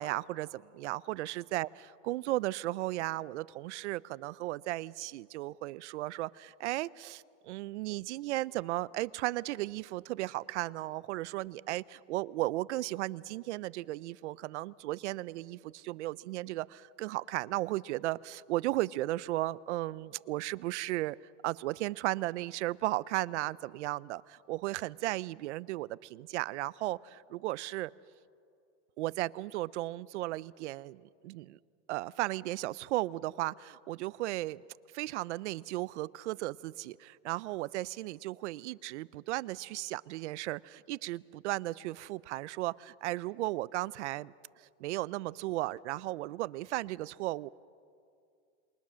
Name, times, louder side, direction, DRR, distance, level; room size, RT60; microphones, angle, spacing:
voice 1, 0.0-21.2 21.4-27.9 29.0-31.6 31.9-34.6 34.9-44.3 44.6-47.5, right 17 dB, 70° right, 21 dB, 0.6 m, -35 dB
27.5 x 22.5 x 6.3 m, 2.4 s
supercardioid pair, 165°, 36 cm